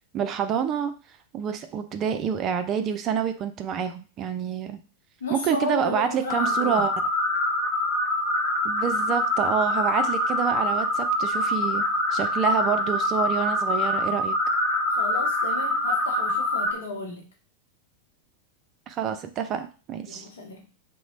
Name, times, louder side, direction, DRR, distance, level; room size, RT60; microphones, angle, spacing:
voice 1, 0.1-0.9 1.3-4.8 5.3-6.9 8.6-11.8 12.1-14.4 18.9-20.2, right 8 dB, 30° right, 8 dB, 0.3 m, -27 dB
voice 2, 5.2-6.9 14.9-17.3 20.1-20.7, left 2 dB, 65° left, 1 dB, 0.7 m, -34 dB
sound 1, 6.3-16.7, left 1 dB, 20° left, 1.1 m, -25 dB
2.9 x 2.1 x 3.8 m, 0.35 s
figure-of-eight pair, 90°, 0 cm